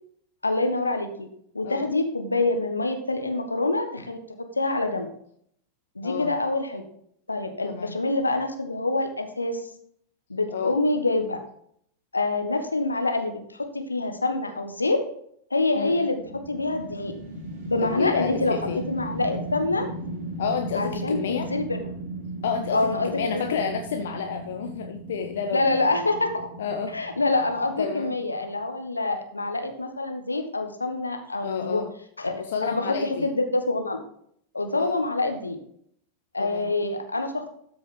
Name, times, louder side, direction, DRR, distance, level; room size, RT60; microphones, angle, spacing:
voice 1, 0.4-1.3 1.5-4.2 4.6-5.1 5.9-6.8 7.3-9.7 10.3-11.4 12.1-15.0 15.5-16.2 16.5-17.1 17.7-18.6 18.9-19.9 20.8-21.8 22.7-23.6 25.5-26.5 26.9-31.8 32.2-34.0 34.5-35.6 36.3-37.5, left 2 dB, 80° left, 6 dB, 1.5 m, -26 dB
voice 2, 6.0-6.4 7.6-8.0 10.5-10.7 15.7-16.1 17.8-18.8 20.4-21.5 22.4-26.0 26.6-27.0 27.8-28.2 31.4-31.9 32.4-33.3 34.7-35.1 36.4-36.7, left 7 dB, 60° left, 5 dB, 0.8 m, -30 dB
sound 1, 16.2-28.4, right 2 dB, 45° right, 3.6 m, -37 dB
13.0 x 6.1 x 3.8 m, 0.65 s
figure-of-eight pair, 90°, 0 cm